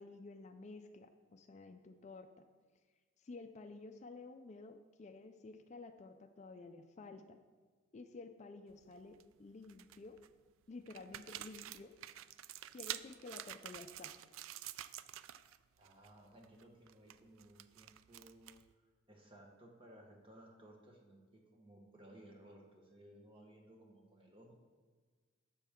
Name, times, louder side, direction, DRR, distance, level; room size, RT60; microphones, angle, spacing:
voice 1, 0.0-2.4 3.2-7.4 7.9-10.2 10.7-11.9 12.7-14.1, left 3 dB, 35° left, 8 dB, 0.4 m, -52 dB
sound 1, 8.7-9.2 9.6-10.3 10.9-15.6 15.8-16.1 16.4-18.7, right 13 dB, 90° right, 0.3 m, -49 dB
voice 2, 15.8-24.5, right 1 dB, 25° right, 1 dB, 1.3 m, -59 dB
9.9 x 7.0 x 3.6 m, 1.4 s
head